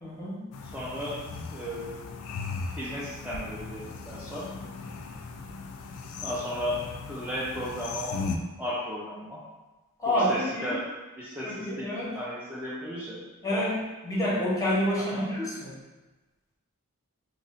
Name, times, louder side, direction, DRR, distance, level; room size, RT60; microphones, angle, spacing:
voice 1, 0.0-0.4 10.0-10.8 11.4-12.2 13.4-13.8 14.0-15.7, equal, 15° left, -7 dB, 0.8 m, -28 dB
sound 1, 0.5-8.4, left 4 dB, 85° left, 0.3 m, -38 dB
voice 2, 0.6-1.2 1.5-2.0 2.8-4.5 6.2-6.8 7.1-8.2 8.6-9.4 10.1-10.8 11.2-11.9 12.1-13.2 13.5-13.7 15.0-15.3, equal, 5° right, -8 dB, 0.3 m, -35 dB
2.4 x 2.1 x 3.9 m, 1.2 s
head